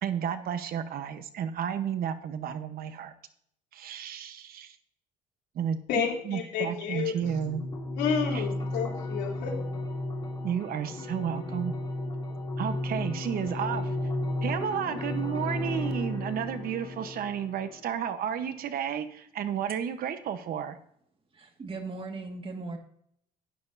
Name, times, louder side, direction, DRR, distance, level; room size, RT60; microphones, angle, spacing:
voice 1, 0.0-3.1 3.7-4.8 5.5-7.6 8.3-8.4 10.4-11.7 12.6-13.9 14.4-20.8, right 8 dB, 60° right, 10 dB, 1.1 m, -32 dB
voice 2, 5.9-7.4 7.9-9.5, left 7 dB, 85° left, -2 dB, 3.2 m, -30 dB
sound 1, 7.2-18.2, left 1 dB, 25° left, 2.9 m, -34 dB
voice 3, 21.3-22.8, right 3 dB, 30° right, 4 dB, 2.0 m, -38 dB
12.5 x 9.5 x 2.7 m, 0.69 s
cardioid pair, 110°, 17 cm